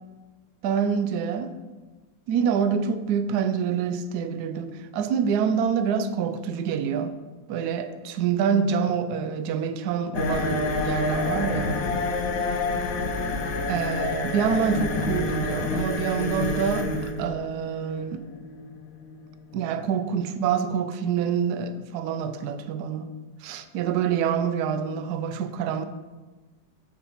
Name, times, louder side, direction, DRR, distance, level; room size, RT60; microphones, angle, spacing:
voice 1, 0.6-1.5 2.3-7.1 7.5-11.9 13.7-18.3 19.5-23.1 23.4-25.9, right 7 dB, 70° right, 1.0 m, -26 dB
sound 1, 10.1-19.8, left 3 dB, 85° left, 1.6 m, -28 dB
Telephone, 10.3-17.3, right 4 dB, 30° right, 1.0 m, -41 dB
8.9 x 4.6 x 5.5 m
omnidirectional pair, 2.0 m